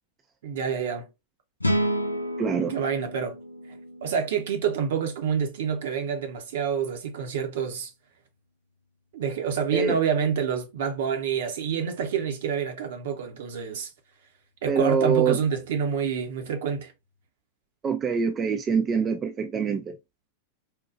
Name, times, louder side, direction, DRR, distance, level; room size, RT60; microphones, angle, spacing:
voice 1, 0.4-1.1 2.7-3.4 3.7-7.9 9.1-13.9 14.6-16.9, right 7 dB, 55° right, 0.8 m, -27 dB
sound 1, 1.6-4.9, equal, 85° left, 0.5 m, -30 dB
voice 2, 2.4-2.7 9.7-10.0 14.7-15.4 17.8-20.0, right 6 dB, 25° right, 0.4 m, -24 dB
4.4 x 2.3 x 2.5 m
figure-of-eight pair, 90°, 0 cm